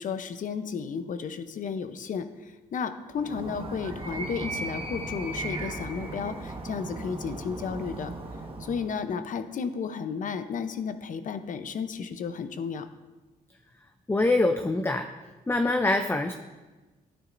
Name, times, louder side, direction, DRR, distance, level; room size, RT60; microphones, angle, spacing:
voice 1, 0.0-8.1 8.6-12.9, left 6 dB, 55° left, 10 dB, 0.8 m, -33 dB
Animal, 3.2-9.0, right 2 dB, 35° right, 1.4 m, -37 dB
voice 2, 14.1-15.1 15.5-16.3, left 2 dB, 15° left, 6 dB, 0.5 m, -24 dB
12.0 x 9.7 x 2.6 m, 1.2 s
cardioid pair, 80°, 16 cm